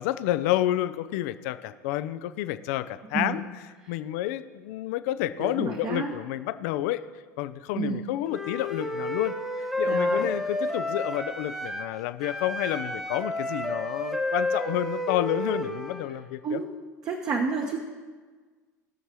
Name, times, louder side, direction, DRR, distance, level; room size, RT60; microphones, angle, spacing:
voice 1, 0.0-3.4 3.9-7.0 7.4-16.6, left 14 dB, 60° left, 13 dB, 0.5 m, -29 dB
voice 2, 5.4-6.1 7.7-8.0 9.9-10.3 16.4-16.7 17.0-17.8, right 5 dB, 40° right, 2 dB, 1.2 m, -30 dB
Wind instrument woodwind instrument, 8.3-11.9 12.2-16.1, left 1 dB, 5° right, 1.3 m, -30 dB
19.5 x 6.6 x 3.1 m, 1.5 s
hypercardioid pair, 75°, 9 cm